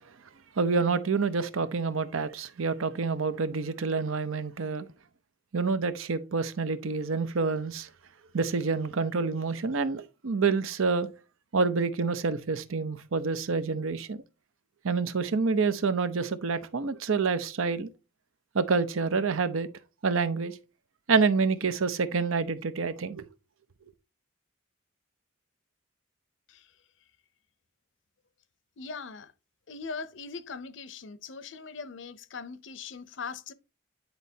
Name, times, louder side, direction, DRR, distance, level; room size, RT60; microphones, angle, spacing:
voice 1, 0.6-4.9 5.5-7.9 8.3-11.1 11.5-14.2 14.8-17.9 18.5-19.7 20.0-20.5 21.1-23.2, right 4 dB, 85° right, 0.7 m, -27 dB
voice 2, 28.8-29.3 29.7-33.5, left 5 dB, 65° left, 0.6 m, -40 dB
9.6 x 4.1 x 2.7 m
head